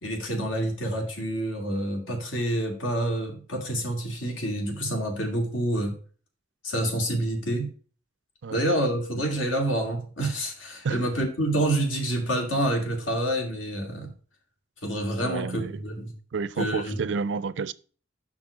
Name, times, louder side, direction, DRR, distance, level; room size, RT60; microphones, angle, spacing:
voice 1, 0.0-5.9 6.6-7.7 8.5-14.1 14.8-16.1 16.6-17.1, right 1 dB, 90° left, 2.3 m, -28 dB
voice 2, 15.2-15.8 16.3-17.7, right 5 dB, 65° right, 0.4 m, -30 dB
6.1 x 5.8 x 4.8 m
head